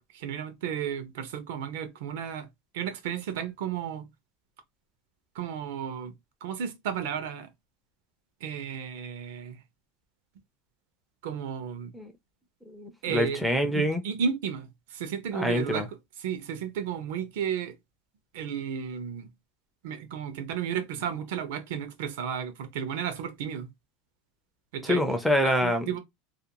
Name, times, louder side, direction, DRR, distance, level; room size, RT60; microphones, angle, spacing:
voice 1, 0.0-2.5 2.7-4.1 5.3-6.1 6.4-7.5 8.4-9.6 11.2-11.9 13.0-13.4 13.7-15.9 16.2-17.7 18.3-19.3 19.8-23.7 24.7-25.0 25.6-26.0, right 8 dB, 70° right, 0.6 m, -33 dB
voice 2, 12.7-14.0 15.3-15.9 24.8-25.9, left 1 dB, ahead, 0.4 m, -26 dB
2.5 x 2.2 x 2.8 m
supercardioid pair, 170°, 0 cm